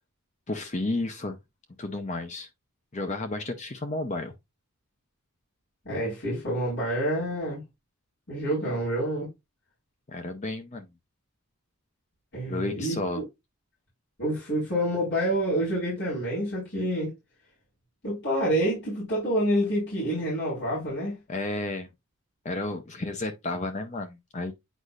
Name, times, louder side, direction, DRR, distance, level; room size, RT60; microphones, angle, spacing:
voice 1, 0.5-1.4 1.8-2.5 2.9-4.3 10.1-10.9 12.5-13.2 21.3-21.9 22.4-24.5, left 2 dB, 30° left, 0.6 m, -32 dB
voice 2, 5.8-7.6 8.3-9.3 12.3-13.2 14.2-17.1 18.0-21.2, equal, 50° left, 4.4 m, -28 dB
8.2 x 5.3 x 2.4 m
head